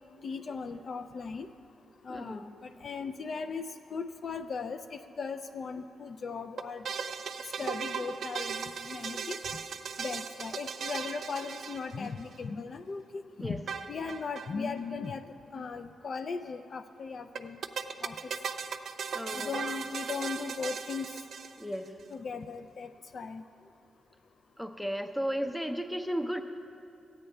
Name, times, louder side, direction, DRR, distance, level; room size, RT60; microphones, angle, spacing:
voice 1, 0.2-1.5 2.0-3.7 3.9-6.8 7.6-9.4 10.0-13.6 13.9-15.2 15.5-17.6 18.0-18.3 19.3-21.1 22.1-23.4, left 5 dB, 55° left, 8 dB, 0.3 m, -38 dB
voice 2, 2.1-2.5 13.4-13.6 19.1-19.8 21.6-22.0 24.6-26.4, equal, 5° left, 7 dB, 0.6 m, -34 dB
sound 1, 6.6-12.4 13.7-14.5 14.8-14.9 15.0-15.1 17.4-21.9, right 6 dB, 70° right, 0.4 m, -37 dB
13.5 x 8.8 x 3.3 m, 2.6 s
cardioid pair, 85°, 0 cm